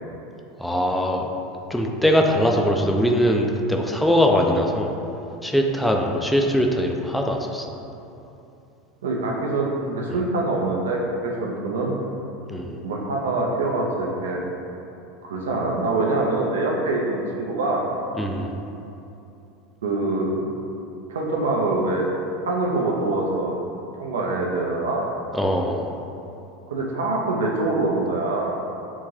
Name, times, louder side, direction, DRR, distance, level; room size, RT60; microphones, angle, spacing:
voice 1, 0.6-1.3 1.7-4.9 5.4-7.7 12.5-12.8 18.2-18.5 25.3-25.9, equal, 5° left, 1 dB, 0.4 m, -21 dB
voice 2, 9.0-12.0 12.8-14.4 15.2-17.8 19.8-20.5 21.1-22.1 22.5-23.6 24.0-25.1 26.7-28.6, right 2 dB, 80° right, -1 dB, 0.5 m, -24 dB
3.6 x 2.6 x 3.1 m, 2.8 s
hypercardioid pair, 85°, 0 cm